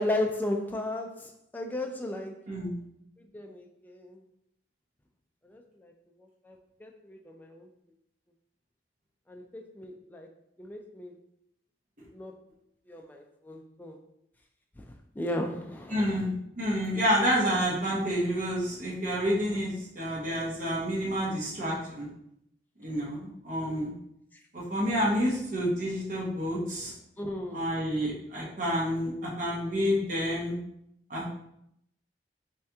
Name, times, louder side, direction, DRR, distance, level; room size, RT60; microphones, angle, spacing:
voice 1, 0.0-2.4 3.2-4.2 5.4-5.9 6.2-7.7 9.3-10.3 10.6-11.1 12.1-12.3 12.9-14.0 14.8-16.3 19.5-19.6 24.3-24.4 27.2-27.7, left 1 dB, 10° left, 2 dB, 0.3 m, -35 dB
voice 2, 2.5-2.8 15.9-22.1 22.8-23.9 24.5-26.9 27.5-30.6 31.1-31.3, equal, 45° right, -6 dB, 1.0 m, -29 dB
3.3 x 2.8 x 3.4 m, 0.76 s
head